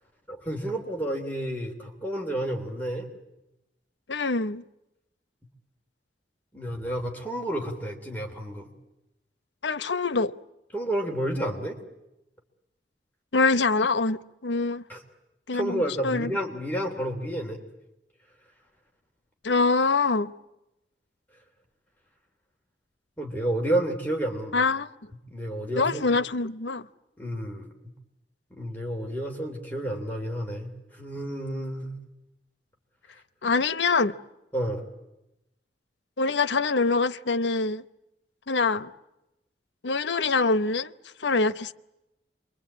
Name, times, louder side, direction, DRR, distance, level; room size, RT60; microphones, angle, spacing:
voice 1, 0.3-3.1 6.5-8.7 10.7-11.8 14.9-15.0 15.5-17.6 23.2-24.6 25.3-26.1 27.2-27.7 28.5-32.0 34.5-34.9, right 1 dB, 10° left, 3.2 m, -30 dB
voice 2, 4.1-4.6 9.6-10.3 13.3-14.8 15.5-16.3 19.4-20.3 24.5-24.9 25.8-26.9 33.4-34.1 36.2-37.8 38.5-38.9 39.8-40.9 41.2-41.7, left 3 dB, 85° left, 0.9 m, -24 dB
28.5 x 23.5 x 8.7 m
head